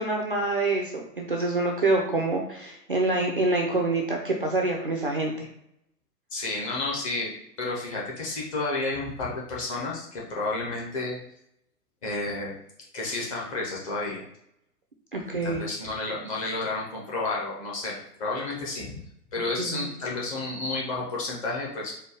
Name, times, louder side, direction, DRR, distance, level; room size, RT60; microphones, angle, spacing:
voice 1, 0.0-5.5 15.1-15.6 19.6-19.9, right 2 dB, 35° right, 0 dB, 0.4 m, -26 dB
voice 2, 6.3-11.2 12.0-12.6 12.9-14.2 15.4-18.9 19.3-21.9, left 2 dB, 20° left, -4 dB, 0.7 m, -31 dB
4.3 x 2.2 x 4.7 m, 0.76 s
figure-of-eight pair, 125°, 49 cm